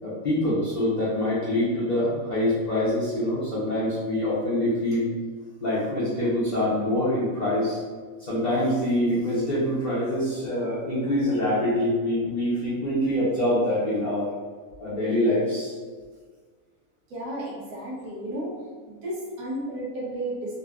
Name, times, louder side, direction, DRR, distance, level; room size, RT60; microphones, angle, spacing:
voice 1, 0.0-5.1 5.6-7.8 8.2-14.3 14.8-15.7, left 1 dB, 40° left, -11 dB, 0.6 m, -25 dB
voice 2, 17.1-18.5 18.9-20.6, right 1 dB, 75° right, -5 dB, 1.4 m, -33 dB
3.8 x 2.2 x 2.3 m, 1.5 s
omnidirectional pair, 1.6 m